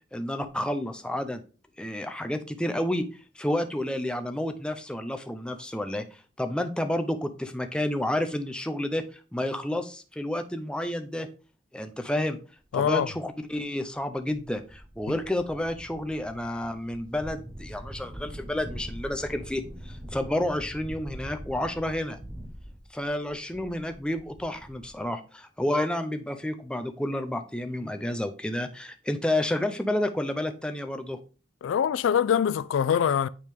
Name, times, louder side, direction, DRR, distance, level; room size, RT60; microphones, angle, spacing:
voice 1, 0.1-1.4 1.8-3.1 3.4-11.3 11.7-12.4 12.7-22.2 22.9-31.2, left 1 dB, 5° left, 0.5 m, -30 dB
voice 2, 12.7-13.1 31.6-33.3, left 8 dB, 80° left, 0.3 m, -24 dB
sound 1, 14.1-25.1, equal, 20° right, 0.8 m, -43 dB
9.1 x 3.6 x 3.4 m
head